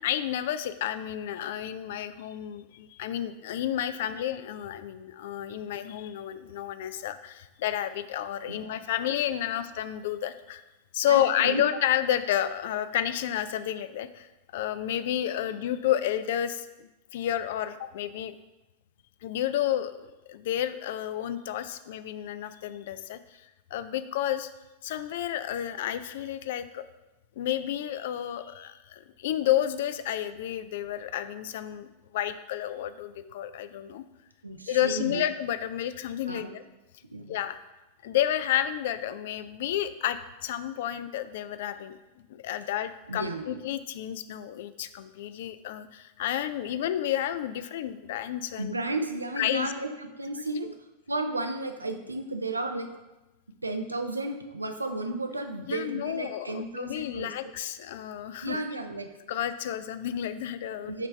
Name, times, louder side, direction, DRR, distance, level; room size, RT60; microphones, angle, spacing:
voice 1, 0.0-10.6 10.9-18.3 19.2-20.0 20.3-23.4 23.7-24.5 24.8-26.8 27.4-34.0 34.7-36.6 37.3-37.6 38.0-42.0 42.3-48.7 49.4-49.7 55.7-58.6 59.3-61.1, left 11 dB, 55° left, 13 dB, 0.3 m, -31 dB
voice 2, 11.1-11.6 15.5-15.6 34.4-35.3 36.3-36.6 37.1-37.4 43.1-43.6 46.7-46.8 48.6-50.7 51.1-52.9 53.6-57.5 58.4-59.1 60.9-61.1, right 2 dB, 80° right, 6 dB, 0.5 m, -33 dB
9.4 x 3.4 x 3.3 m, 1.0 s
figure-of-eight pair, 90°, 0 cm